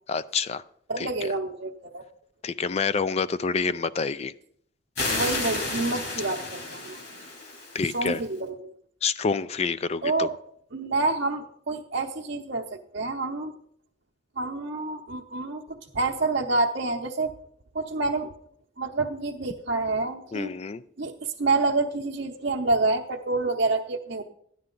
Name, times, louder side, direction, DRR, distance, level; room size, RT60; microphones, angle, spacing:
voice 1, 0.1-0.6 1.0-1.3 2.4-4.3 7.7-8.2 9.0-10.3 20.3-20.8, left 5 dB, 35° left, 15 dB, 0.3 m, -27 dB
voice 2, 0.9-2.0 5.1-7.0 7.9-8.7 10.0-10.4 10.7-12.6 12.9-13.5 14.4-17.3 17.7-18.3 18.8-20.5 21.0-24.2, right 3 dB, 60° right, -1 dB, 0.8 m, -28 dB
sound 1, 5.0-8.3, left 2 dB, 55° left, 2.6 m, -32 dB
13.0 x 9.9 x 3.8 m, 0.66 s
head